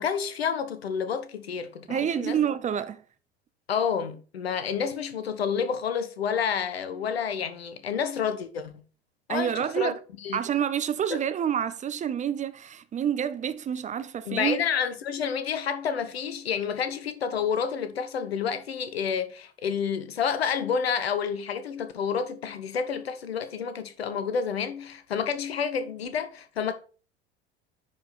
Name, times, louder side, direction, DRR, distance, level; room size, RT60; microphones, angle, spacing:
voice 1, 0.0-2.4 3.7-8.7 9.3-9.9 10.2-10.4 11.1-11.2 14.3-26.7, left 7 dB, 70° left, 1.1 m, -29 dB
voice 2, 1.9-3.0 9.3-10.0 10.3-14.6, right 9 dB, 25° right, 0.7 m, -28 dB
10.5 x 5.0 x 4.2 m
figure-of-eight pair, 70°, 32 cm